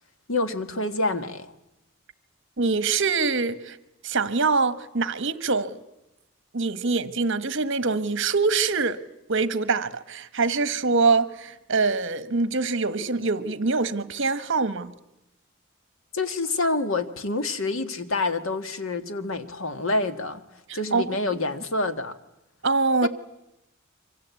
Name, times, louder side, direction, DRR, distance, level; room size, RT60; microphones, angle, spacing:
voice 1, 0.3-1.5 16.1-20.4 20.7-22.1 23.0-23.1, left 2 dB, 70° left, 1.8 m, -27 dB
voice 2, 2.6-3.8 4.0-5.8 6.5-9.0 9.3-14.9 20.7-21.0 22.6-23.1, right 4 dB, 60° right, 1.4 m, -24 dB
27.0 x 25.0 x 8.5 m
head